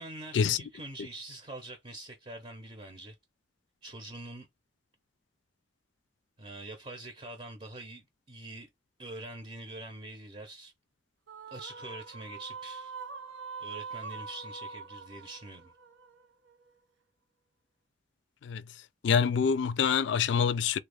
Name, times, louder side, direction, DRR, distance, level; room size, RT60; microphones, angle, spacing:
voice 1, 0.0-3.1 3.8-4.5 6.4-8.7 9.0-10.7 11.5-12.9 13.6-15.7, right 2 dB, 30° right, 0.7 m, -44 dB
sound 1, 11.3-16.7, right 5 dB, 80° right, 0.7 m, -44 dB
voice 2, 19.0-20.8, left 6 dB, 70° left, 0.3 m, -26 dB
3.4 x 2.3 x 3.3 m
head